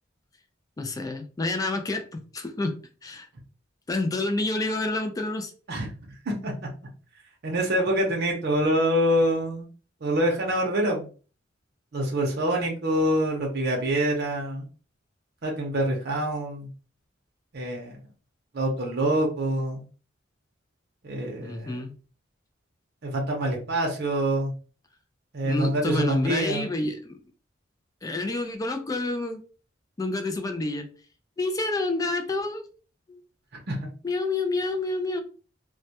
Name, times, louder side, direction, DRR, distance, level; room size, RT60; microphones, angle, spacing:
voice 1, 0.8-2.7 3.0-3.3 3.9-5.5 21.4-21.9 25.4-27.2 28.0-29.4 30.0-30.9 31.4-32.6 33.1-33.2 34.0-35.2, left 2 dB, 20° left, 0.3 m, -28 dB
voice 2, 7.4-9.7 10.0-11.1 11.9-14.7 15.4-16.7 17.5-17.9 18.5-19.8 21.0-21.8 23.0-24.5 25.3-26.7 33.7-33.9, right 1 dB, 55° right, 0.6 m, -25 dB
2.2 x 2.1 x 2.7 m
head